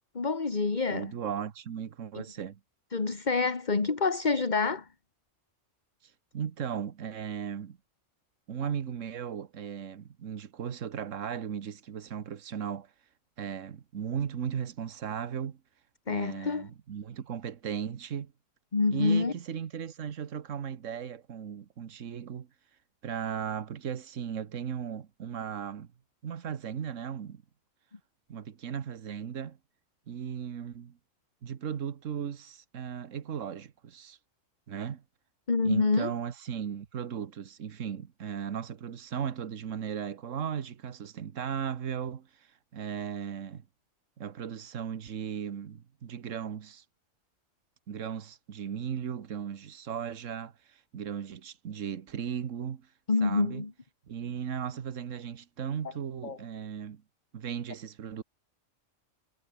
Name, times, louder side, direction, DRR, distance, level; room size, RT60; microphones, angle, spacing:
voice 1, 0.2-1.1 2.1-2.2 2.9-4.9 16.1-16.7 18.7-19.3 35.5-36.1 53.1-53.7 56.2-56.4, left 4 dB, 35° left, 1.8 m, -27 dB
voice 2, 0.9-2.6 6.3-7.8 8.5-12.9 13.4-15.6 16.1-18.3 18.9-22.5 23.0-25.9 26.2-27.4 28.3-29.6 30.1-31.0 31.4-34.2 34.7-35.0 35.6-42.3 42.7-43.6 44.2-46.8 47.9-52.8 53.2-53.7 54.1-57.0 57.3-58.2, right 8 dB, 75° right, 1.5 m, -36 dB
omnidirectional pair, 1.3 m